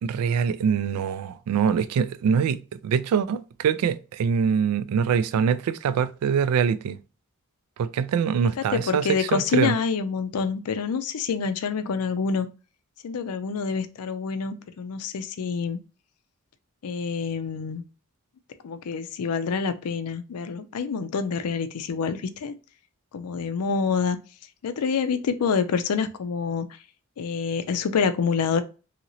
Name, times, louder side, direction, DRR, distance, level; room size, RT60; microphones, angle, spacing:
voice 1, 0.0-7.0 7.8-9.7, right 7 dB, 80° right, 0.3 m, -24 dB
voice 2, 8.7-12.5 13.0-15.8 16.8-17.8 18.6-22.5 23.1-24.2 24.6-26.7 27.2-28.6, left 5 dB, 85° left, 0.4 m, -27 dB
2.9 x 2.8 x 2.6 m
head